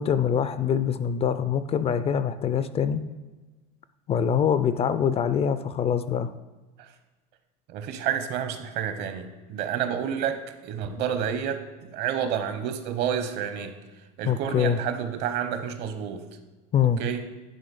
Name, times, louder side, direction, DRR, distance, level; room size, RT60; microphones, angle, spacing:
voice 1, 0.0-3.0 4.1-6.3 14.2-14.8 16.7-17.0, left 8 dB, 30° left, 12 dB, 0.4 m, -24 dB
voice 2, 7.7-13.7 14.2-16.2 17.0-17.2, right 8 dB, 55° right, 8 dB, 1.0 m, -29 dB
10.5 x 3.7 x 5.4 m, 1.2 s
supercardioid pair, 115°, 20 cm